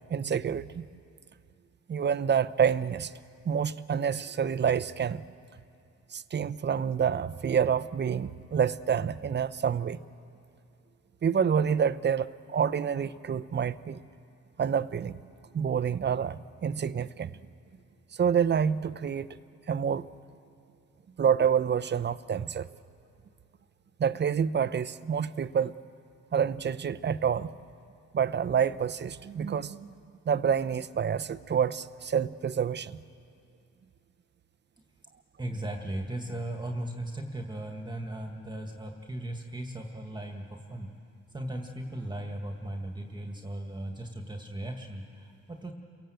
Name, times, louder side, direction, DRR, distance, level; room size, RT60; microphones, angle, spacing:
voice 1, 0.1-0.9 1.9-3.1 3.5-5.2 6.1-10.0 11.2-14.0 14.6-15.2 15.5-17.3 18.1-19.3 19.7-20.1 21.2-22.7 24.0-25.7 26.3-27.5 28.1-29.9 30.3-33.0, right 7 dB, 35° right, 0.7 m, -28 dB
voice 2, 35.4-40.9 41.3-45.7, right 1 dB, 15° right, 1.9 m, -37 dB
29.0 x 17.5 x 7.8 m
cardioid pair, 90°, 30 cm